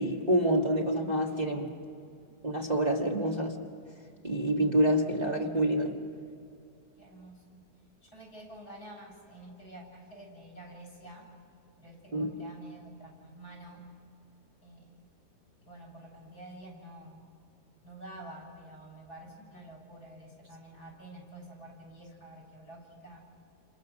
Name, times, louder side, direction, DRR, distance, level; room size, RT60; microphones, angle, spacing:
voice 1, 0.0-1.7 2.4-3.6 4.2-5.9 12.1-12.3, right 1 dB, 25° right, -1 dB, 1.7 m, -27 dB
voice 2, 2.0-2.4 7.0-7.6 8.0-11.3 11.8-13.9 14.6-14.9 15.6-17.2 17.8-23.2, right 1 dB, 65° left, 0 dB, 7.1 m, -49 dB
29.5 x 28.0 x 6.3 m, 2.5 s
omnidirectional pair, 1.7 m